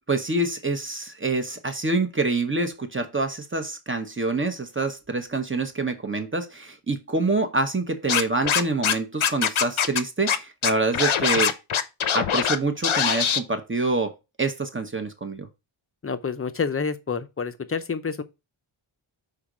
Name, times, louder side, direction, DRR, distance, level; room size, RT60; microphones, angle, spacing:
voice 1, 0.1-11.5 12.1-14.1 14.4-15.5, right 3 dB, 25° right, 0.9 m, -26 dB
Scratching (performance technique), 8.1-8.9 9.2-10.0 10.3-10.4 10.6-12.6 12.8-13.4, left 8 dB, 70° left, 0.8 m, -22 dB
voice 2, 16.0-18.2, left 5 dB, 30° left, 0.6 m, -28 dB
5.8 x 4.0 x 4.9 m
wide cardioid pair, 145°, 50 cm